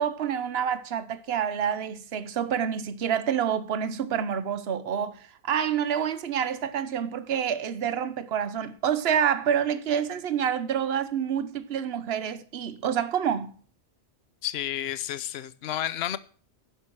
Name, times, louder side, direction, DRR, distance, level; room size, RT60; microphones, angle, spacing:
voice 1, 0.0-13.6, right 8 dB, 60° right, 1.1 m, -28 dB
voice 2, 14.4-16.2, left 11 dB, 65° left, 0.9 m, -31 dB
11.5 x 10.5 x 4.6 m
omnidirectional pair, 1.2 m